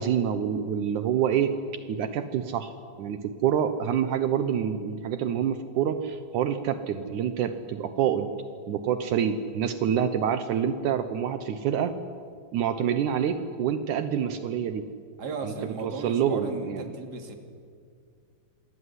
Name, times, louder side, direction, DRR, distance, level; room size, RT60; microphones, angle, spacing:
voice 1, 0.0-1.5 1.9-2.7 3.0-8.3 8.7-11.9 12.5-14.8 15.4-15.5 15.8-16.9, right 8 dB, 85° right, 10 dB, 1.7 m, -27 dB
voice 2, 15.2-17.4, right 4 dB, 30° right, 5 dB, 2.3 m, -35 dB
27.5 x 21.5 x 9.8 m, 2.2 s
omnidirectional pair, 5.1 m